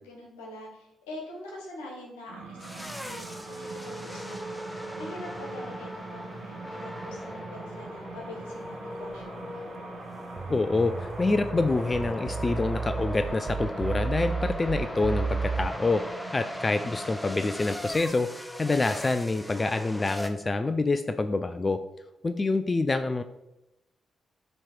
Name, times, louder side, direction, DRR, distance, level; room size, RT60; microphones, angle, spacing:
voice 1, 0.0-4.4 5.0-9.4, left 2 dB, 90° left, -1 dB, 1.3 m, -44 dB
sound 1, 2.3-17.2, right 4 dB, 75° right, 1.0 m, -44 dB
sound 2, 2.6-20.3, left 1 dB, 10° left, 0.8 m, -39 dB
sound 3, 10.4-15.7, right 5 dB, 50° right, 0.4 m, -32 dB
voice 2, 10.5-16.0 16.3-18.3 18.6-21.8 22.2-23.2, left 3 dB, 35° left, 9 dB, 0.4 m, -26 dB
7.5 x 3.2 x 4.5 m, 0.89 s
hypercardioid pair, 40°, 0 cm